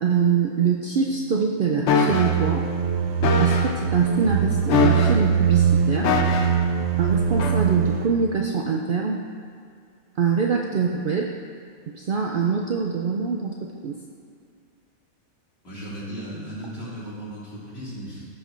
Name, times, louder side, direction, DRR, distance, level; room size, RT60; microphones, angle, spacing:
voice 1, 0.0-2.6 3.4-6.1 7.0-9.2 10.2-11.3 11.9-14.0, right 5 dB, 85° right, 0 dB, 0.4 m, -24 dB
sound 1, 1.9-2.3 3.2-3.7 4.7-5.3 6.0-6.6 7.4-7.6, left 5 dB, 65° left, 0.8 m, -22 dB
sound 2, 2.1-8.1, right 7 dB, 65° right, 0.8 m, -22 dB
voice 2, 15.6-18.3, right 1 dB, 45° left, -8 dB, 2.4 m, -36 dB
14.5 x 5.3 x 2.5 m, 2.4 s
omnidirectional pair, 1.5 m